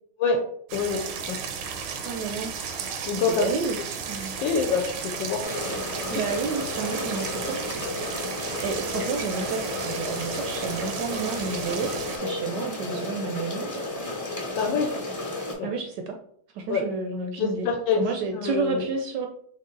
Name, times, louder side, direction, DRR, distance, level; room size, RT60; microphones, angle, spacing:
voice 1, 0.2-1.4 3.0-3.5 4.2-5.9 14.5-14.9 15.6-15.7 16.7-16.8 17.4-18.0 18.3-18.9, left 5 dB, 75° left, 3 dB, 1.2 m, -26 dB
sound 1, 0.7-12.2, right 6 dB, 90° right, 1.5 m, -34 dB
voice 2, 2.0-2.6 3.1-3.8 4.1-4.4 6.1-7.6 8.6-13.8 15.6-16.2 16.5-17.7 18.0-19.3, right 4 dB, 75° right, 3 dB, 1.0 m, -30 dB
sound 2, 5.4-15.5, left 1 dB, 15° left, 0.7 m, -32 dB
4.6 x 3.0 x 3.7 m, 0.63 s
omnidirectional pair, 2.2 m